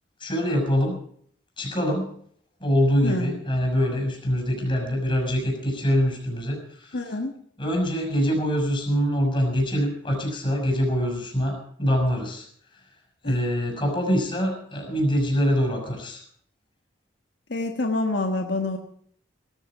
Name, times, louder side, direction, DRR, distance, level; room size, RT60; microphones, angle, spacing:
voice 1, 0.2-1.0 1.6-2.1 2.6-7.0 7.6-12.5 13.2-16.2, equal, 25° left, 2 dB, 6.2 m, -24 dB
voice 2, 6.9-7.3 13.2-13.4 17.5-18.8, left 2 dB, 70° left, 3 dB, 1.4 m, -26 dB
18.5 x 14.5 x 5.0 m, 0.62 s
head